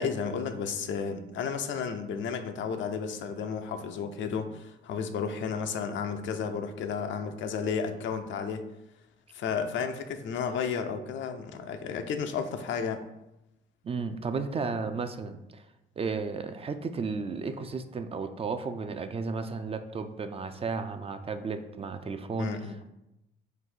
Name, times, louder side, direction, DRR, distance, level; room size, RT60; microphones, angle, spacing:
voice 1, 0.0-8.6 9.3-13.0 22.4-22.8, left 6 dB, 70° left, 7 dB, 0.5 m, -32 dB
voice 2, 13.8-15.6 16.0-22.5, right 4 dB, 30° right, 8 dB, 0.4 m, -33 dB
3.9 x 2.6 x 4.4 m, 0.90 s
cardioid pair, 90°, 20 cm